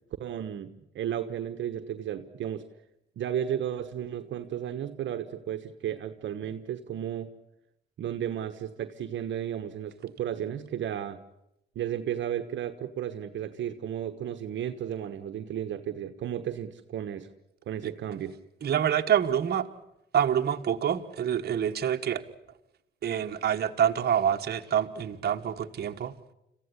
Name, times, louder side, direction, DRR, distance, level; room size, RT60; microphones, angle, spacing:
voice 1, 0.2-2.6 3.2-7.3 8.0-11.2 11.7-17.3 17.7-18.4, right 10 dB, 70° right, 8 dB, 1.3 m, -34 dB
voice 2, 18.6-19.7 20.1-22.2 23.0-26.1, right 9 dB, 55° right, 5 dB, 1.5 m, -26 dB
26.5 x 15.0 x 10.0 m, 0.87 s
cardioid pair, 90°, 20 cm